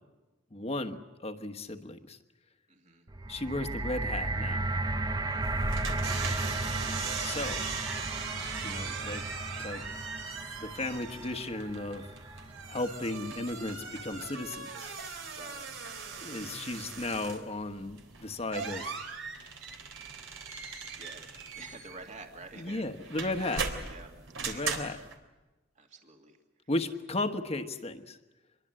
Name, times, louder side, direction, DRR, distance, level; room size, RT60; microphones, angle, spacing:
voice 1, 0.5-2.2 3.3-4.7 7.2-7.7 8.6-9.3 9.6-9.9 10.6-12.1 12.7-14.9 16.2-19.0 22.6-23.6 24.4-25.0 26.7-28.2, left 2 dB, 35° left, 7 dB, 1.3 m, -35 dB
voice 2, 2.7-3.0 5.2-5.6 15.4-15.6 21.0-21.2 21.5-22.9 23.4-23.5 23.9-24.1 24.4-24.8 25.8-26.4, right 3 dB, 40° right, 3 dB, 2.4 m, -49 dB
sound 1, 3.1-13.3 14.1-14.2, right 2 dB, 20° right, 1.0 m, -35 dB
sound 2, 5.4-25.1, right 4 dB, 75° right, 3.6 m, -39 dB
26.5 x 22.5 x 7.7 m, 1.1 s
head